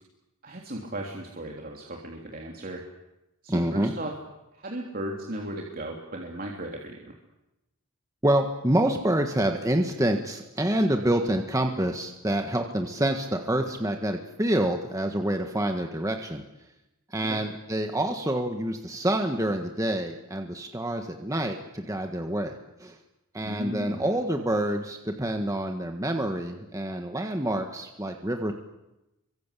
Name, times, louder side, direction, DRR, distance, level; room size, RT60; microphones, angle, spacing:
voice 1, 0.4-2.8 3.4-4.1 4.5-7.1 17.2-17.4 23.4-24.2, right 1 dB, 40° right, 0 dB, 3.4 m, -36 dB
voice 2, 3.5-3.9 8.2-16.4 17.1-23.0 23.3-28.5, right 1 dB, 15° right, 4 dB, 1.6 m, -27 dB
28.5 x 24.5 x 8.5 m, 0.94 s
head